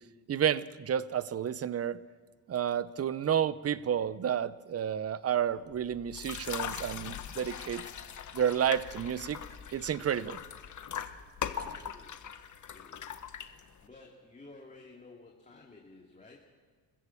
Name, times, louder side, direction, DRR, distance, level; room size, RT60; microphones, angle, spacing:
voice 1, 0.3-2.0 2.5-7.8 8.3-9.4 9.7-10.4, right 9 dB, 35° right, 17 dB, 0.8 m, -30 dB
Bird, 5.4-13.2, left 8 dB, 75° left, 4.3 m, -53 dB
sound 1, 6.1-13.9, left 8 dB, 45° left, 1.4 m, -41 dB
voice 2, 11.3-12.3 12.7-13.2 13.8-16.4, left 3 dB, 20° left, -1 dB, 2.5 m, -54 dB
26.0 x 15.5 x 7.2 m, 1.5 s
cardioid pair, 110°, 40 cm